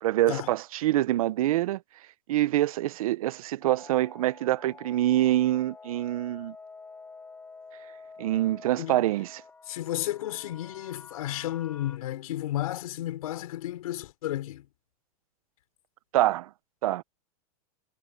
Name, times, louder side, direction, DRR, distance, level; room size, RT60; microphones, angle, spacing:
voice 1, 0.0-1.8 2.3-6.5 8.2-9.4 16.1-16.5 16.8-17.0, right 14 dB, 70° right, 0.7 m, -25 dB
sound 1, 3.6-12.0, left 4 dB, 10° left, 3.2 m, -49 dB
voice 2, 9.7-14.7, left 13 dB, 75° left, 4.6 m, -33 dB
supercardioid pair, 160°, 19 cm